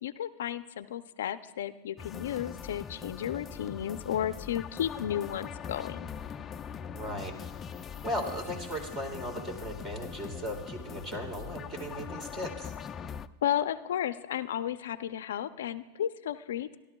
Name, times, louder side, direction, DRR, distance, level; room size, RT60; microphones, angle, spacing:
voice 1, 0.0-6.1 13.4-16.8, left 10 dB, 80° left, 13 dB, 0.4 m, -33 dB
sound 1, 2.0-13.3, left 7 dB, 25° left, 0.4 m, -42 dB
voice 2, 6.9-7.4 8.0-12.7, equal, 30° right, 4 dB, 2.5 m, -37 dB
26.5 x 12.0 x 2.3 m, 1.2 s
hypercardioid pair, 125°, 0 cm